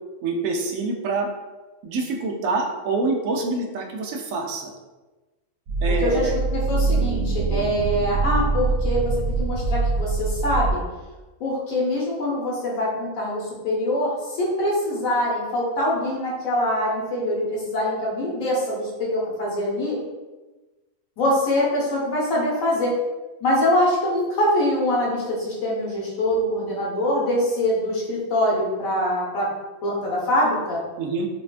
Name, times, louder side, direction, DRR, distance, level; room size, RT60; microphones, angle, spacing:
voice 1, 0.2-1.3 1.8-4.7 5.8-6.4 31.0-31.3, right 3 dB, 90° right, 2 dB, 1.0 m, -26 dB
sound 1, 5.7-10.7, right 3 dB, 65° right, 0.8 m, -24 dB
voice 2, 6.0-10.8 11.4-20.0 21.2-22.9 23.4-29.5 29.8-30.8, left 1 dB, 90° left, -5 dB, 1.4 m, -24 dB
4.2 x 2.2 x 2.4 m, 1.2 s
omnidirectional pair, 1.4 m